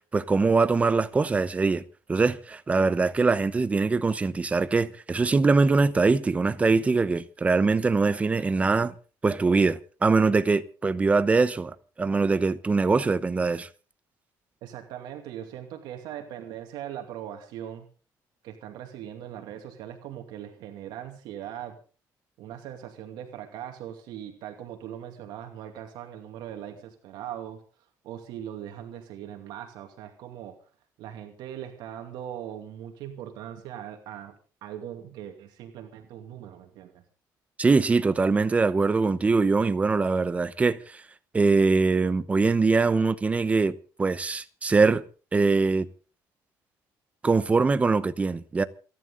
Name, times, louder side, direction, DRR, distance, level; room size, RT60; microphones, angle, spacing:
voice 1, 0.1-1.8 2.1-8.9 9.2-13.7 37.6-41.0 41.3-45.0 45.3-45.9 47.2-48.6, right 4 dB, 20° right, 0.9 m, -23 dB
voice 2, 14.6-17.9 18.4-21.8 22.4-27.6 28.0-30.6 31.0-34.3 34.6-37.0, right 10 dB, 90° right, 2.5 m, -40 dB
28.0 x 11.0 x 3.9 m
cardioid pair, 150°, 7 cm